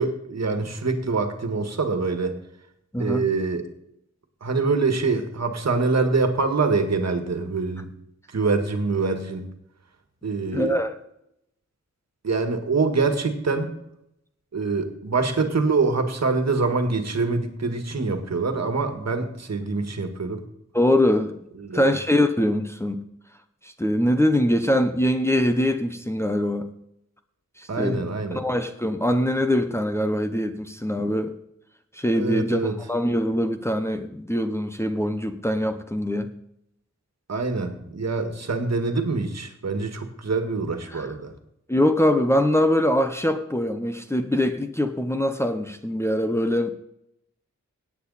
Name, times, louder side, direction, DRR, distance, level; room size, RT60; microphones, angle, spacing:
voice 1, 0.0-2.4 3.0-3.6 4.4-7.9 8.3-9.5 10.2-10.8 12.2-13.8 14.5-20.4 21.6-21.9 27.7-28.4 32.1-32.7 37.3-41.3, right 4 dB, 65° right, 7 dB, 1.8 m, -25 dB
voice 2, 2.9-3.3 10.5-10.9 20.7-21.4 21.7-23.0 23.6-26.7 27.6-31.4 31.9-36.3 40.9-41.1 41.7-46.7, left 1 dB, 10° left, 6 dB, 0.8 m, -23 dB
17.5 x 8.5 x 4.1 m, 0.79 s
wide cardioid pair, 110°, 29 cm